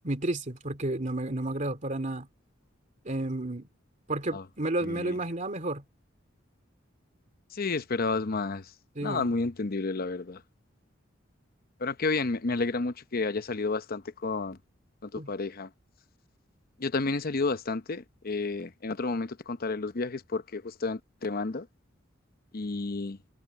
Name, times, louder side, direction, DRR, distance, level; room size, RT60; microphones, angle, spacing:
voice 1, 0.0-2.3 3.0-3.7 4.1-5.8 9.0-9.3 15.1-15.3, right 2 dB, 40° right, 2.6 m, -31 dB
voice 2, 4.8-5.2 7.5-8.7 9.0-10.4 11.8-14.6 15.0-15.7 16.8-21.7 22.5-23.2, left 3 dB, 50° left, 0.8 m, -31 dB
head